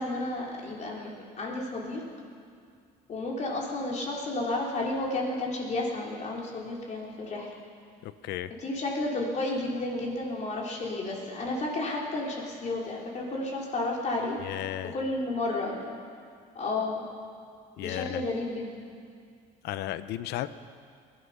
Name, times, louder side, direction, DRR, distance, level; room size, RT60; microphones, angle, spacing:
voice 1, 0.0-2.0 3.1-7.5 8.6-14.4 14.9-15.9 16.6-17.0 17.8-18.8, left 2 dB, 45° left, -2 dB, 3.7 m, -32 dB
voice 2, 8.0-8.5 14.4-15.0 17.8-18.2 19.6-20.5, left 13 dB, 80° left, 14 dB, 0.7 m, -34 dB
20.5 x 12.0 x 5.9 m, 2.2 s
cardioid pair, 110°, 17 cm